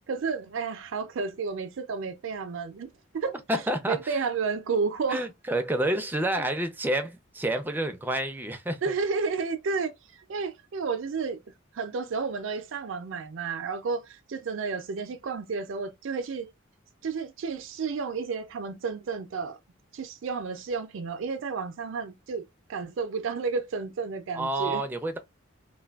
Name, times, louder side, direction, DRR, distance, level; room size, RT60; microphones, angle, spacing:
voice 1, 0.1-3.3 3.9-5.3 8.8-9.9 10.3-11.4 11.7-16.5 17.0-19.6 19.9-22.4 22.7-24.8, right 5 dB, 70° right, 0.4 m, -31 dB
voice 2, 3.5-4.2 5.1-8.8 24.3-25.2, right 1 dB, 10° right, 0.4 m, -29 dB
3.3 x 2.2 x 2.2 m
head